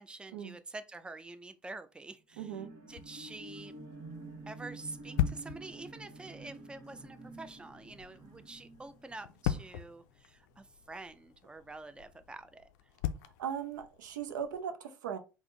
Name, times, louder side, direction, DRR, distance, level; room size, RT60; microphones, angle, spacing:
voice 1, 0.0-2.5 2.9-3.8 4.5-12.7, right 2 dB, 10° right, 0.4 m, -47 dB
sound 1, 2.3-10.1 10.5-10.6, right 2 dB, 55° right, 1.1 m, -49 dB
voice 2, 2.4-2.7 13.4-15.2, right 8 dB, 80° right, 0.5 m, -38 dB
sound 2, 2.9-14.6, left 11 dB, 70° left, 0.4 m, -41 dB
3.5 x 2.1 x 3.7 m
hypercardioid pair, 65°, 10 cm